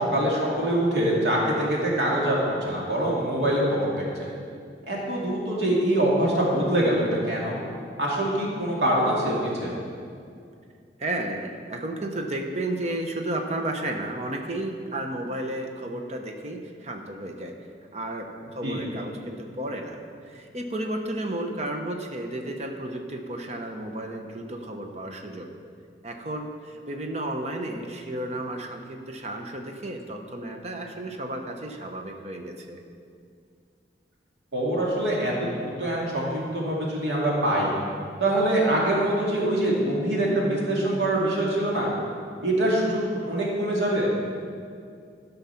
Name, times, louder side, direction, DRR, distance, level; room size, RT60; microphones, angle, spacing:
voice 1, 0.0-4.0 4.9-7.6 8.0-9.7 18.6-18.8 34.5-37.7 38.2-41.9 42.4-44.1, right 1 dB, 80° right, -4 dB, 2.3 m, -24 dB
voice 2, 11.0-17.5 17.9-20.0 20.2-25.5 26.0-32.8, right 1 dB, 40° right, 3 dB, 0.9 m, -33 dB
13.0 x 5.7 x 5.8 m, 2.3 s
head